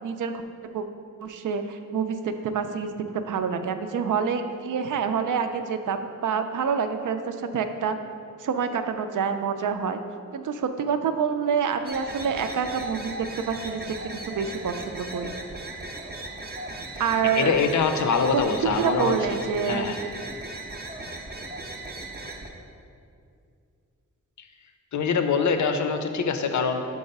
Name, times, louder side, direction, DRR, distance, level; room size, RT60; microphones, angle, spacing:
voice 1, 0.0-0.9 1.2-8.0 8.4-10.0 10.3-15.3 17.0-17.6 18.3-19.9, right 6 dB, 80° right, 8 dB, 0.5 m, -27 dB
sound 1, 11.8-22.5, right 2 dB, 30° right, 0.5 m, -37 dB
voice 2, 17.4-19.4 19.7-20.0 24.9-26.8, left 5 dB, 70° left, 7 dB, 0.5 m, -24 dB
5.4 x 4.8 x 5.3 m, 2.4 s
wide cardioid pair, 165°, 31 cm